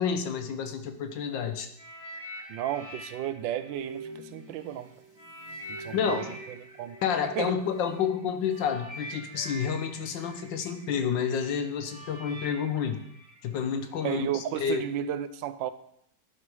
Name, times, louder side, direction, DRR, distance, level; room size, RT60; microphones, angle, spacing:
voice 1, 0.0-1.7 5.9-6.3 7.0-13.0 13.4-14.8, left 7 dB, 80° left, 8 dB, 1.6 m, -29 dB
sound 1, 1.8-4.7 5.2-14.1 14.9-15.0, equal, 25° right, 1.3 m, -45 dB
voice 2, 2.5-4.9 5.7-7.0 7.4-7.6 14.0-15.7, right 10 dB, 85° right, 13 dB, 1.3 m, -33 dB
sound 2, 3.7-8.9 9.1-9.4, right 2 dB, 65° right, 2.2 m, -46 dB
11.0 x 4.7 x 5.4 m, 0.74 s
omnidirectional pair, 2.0 m